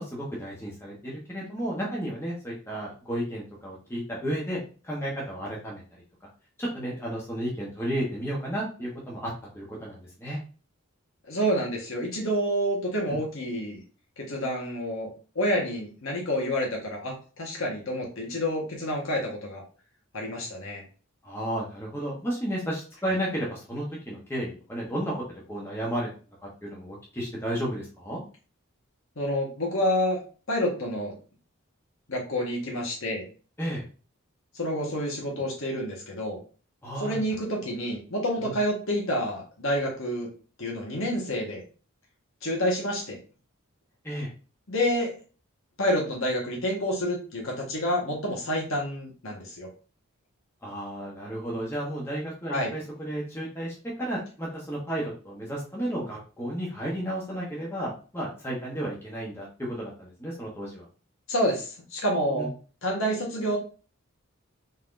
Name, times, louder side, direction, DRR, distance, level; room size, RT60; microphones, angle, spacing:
voice 1, 0.0-4.6 4.8-6.0 6.6-10.4 13.1-13.2 21.2-25.2 25.5-26.1 26.6-28.2 33.6-33.8 36.8-37.2 38.4-38.5 44.0-44.3 50.6-60.8 62.4-62.5, equal, 10° left, -4 dB, 1.1 m, -33 dB
voice 2, 11.3-13.8 14.2-15.1 15.3-19.6 20.1-20.8 29.2-30.2 30.5-31.1 32.1-33.3 34.5-36.4 37.0-40.3 40.6-41.6 42.4-43.2 44.7-45.1 45.8-49.7 52.5-52.7 61.3-62.5 62.8-63.6, equal, 70° left, -2 dB, 1.5 m, -28 dB
4.2 x 3.6 x 2.6 m, 0.37 s
head